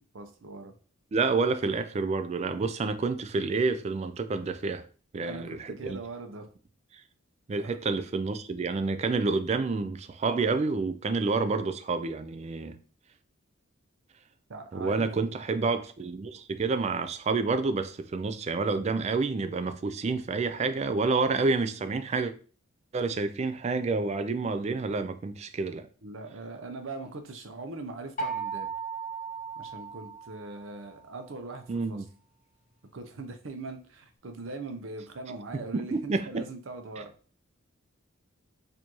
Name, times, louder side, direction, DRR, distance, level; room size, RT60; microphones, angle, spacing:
voice 1, 0.1-0.7 5.2-6.5 7.6-7.8 14.5-15.1 26.0-28.7 29.6-32.0 32.9-37.1, right 3 dB, 70° right, 0.6 m, -41 dB
voice 2, 1.1-4.9 5.1-6.0 7.5-12.8 14.7-22.3 22.9-25.9 31.7-32.0 35.7-36.5, right 4 dB, 30° right, 0.3 m, -29 dB
sound 1, 28.2-30.9, right 5 dB, 40° left, 0.6 m, -36 dB
4.4 x 2.6 x 3.0 m
head